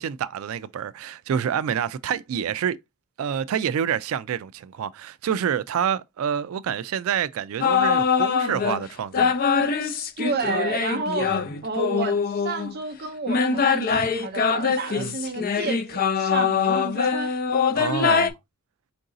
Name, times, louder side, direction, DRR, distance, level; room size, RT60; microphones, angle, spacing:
voice 1, 0.0-2.8 3.2-9.3 11.3-11.4 13.9-14.1 15.0-15.1 17.7-18.3, right 8 dB, 85° right, 0.3 m, -27 dB
sound 1, 7.6-8.8 9.1-12.7 13.3-18.3, left 6 dB, 45° left, 0.5 m, -23 dB
voice 2, 10.2-11.4 11.6-17.3, right 3 dB, 50° right, 0.6 m, -31 dB
4.6 x 2.6 x 3.7 m
head